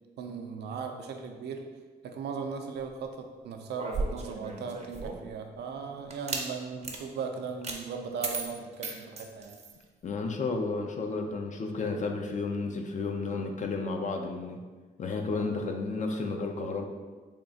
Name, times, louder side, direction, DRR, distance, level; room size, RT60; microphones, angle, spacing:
voice 1, 0.2-1.6 2.0-9.6, right 5 dB, 85° right, 4 dB, 0.5 m, -38 dB
sound 1, 3.7-5.3 6.1-6.5 6.8-7.0 7.6-7.8 8.2-9.8, right 3 dB, 40° right, 0.6 m, -35 dB
voice 2, 10.0-14.6 15.0-16.9, left 3 dB, 45° left, 3 dB, 0.5 m, -32 dB
3.6 x 2.3 x 3.9 m, 1.4 s
cardioid pair, 80°, 17 cm